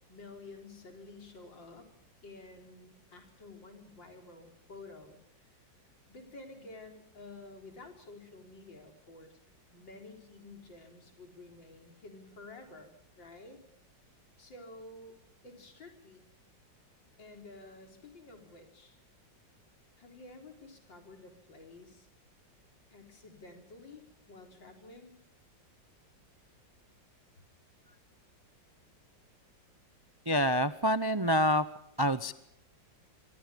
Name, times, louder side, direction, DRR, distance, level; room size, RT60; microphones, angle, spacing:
voice 1, 0.1-1.9 2.2-5.6 6.1-9.4 9.7-13.6 14.4-15.2 15.4-16.2 17.2-19.0 20.0-22.1 22.9-25.1, left 2 dB, 80° left, 4 dB, 4.8 m, -51 dB
voice 2, 30.3-31.6 32.0-32.3, equal, 30° right, 13 dB, 0.4 m, -27 dB
26.5 x 24.0 x 5.3 m, 0.74 s
omnidirectional pair, 2.0 m